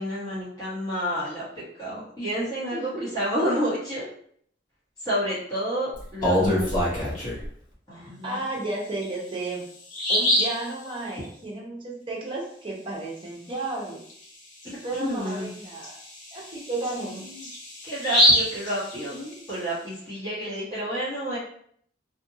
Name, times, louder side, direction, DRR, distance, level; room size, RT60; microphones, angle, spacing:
voice 1, 0.0-1.4 1.8-4.1 5.0-7.2 7.9-8.4 15.0-15.5 17.8-21.4, equal, 20° left, -11 dB, 1.3 m, -30 dB
voice 2, 2.7-3.1 7.9-9.6 10.1-14.0 14.8-16.0 16.3-17.2, right 2 dB, 30° right, -3 dB, 0.7 m, -33 dB
Bird vocalization bird call bird song, 6.0-7.5 8.9-9.0 9.5-9.6 9.9-10.6 14.1-14.2 14.6-14.7 15.3-19.5, equal, 45° left, 1.1 m, -25 dB
2.6 x 2.5 x 2.7 m, 0.64 s
head